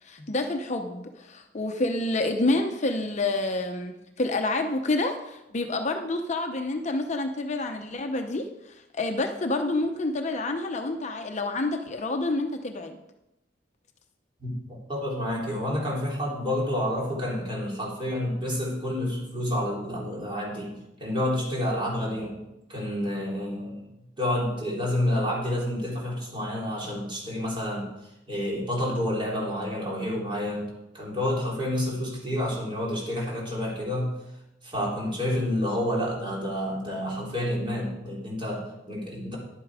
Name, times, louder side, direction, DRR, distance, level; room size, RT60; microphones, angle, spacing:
voice 1, 0.0-13.0, left 2 dB, 40° left, 5 dB, 0.7 m, -28 dB
voice 2, 14.4-22.4 22.7-23.9 24.2-27.9 28.3-34.2 34.6-39.4, left 1 dB, 30° right, -4 dB, 3.5 m, -29 dB
11.0 x 8.4 x 4.8 m, 0.90 s
head